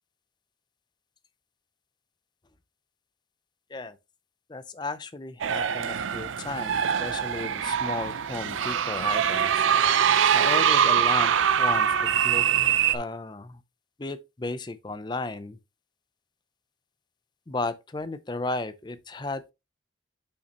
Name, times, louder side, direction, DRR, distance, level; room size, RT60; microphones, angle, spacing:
voice 1, 4.5-9.6 10.3-11.3 11.6-11.9 12.2-12.4 12.9-13.6 14.0-15.6 17.5-19.5, left 2 dB, 20° left, 0.5 m, -34 dB
sound 1, 5.4-13.0, right 8 dB, 85° right, 0.5 m, -23 dB
6.5 x 5.8 x 2.9 m
head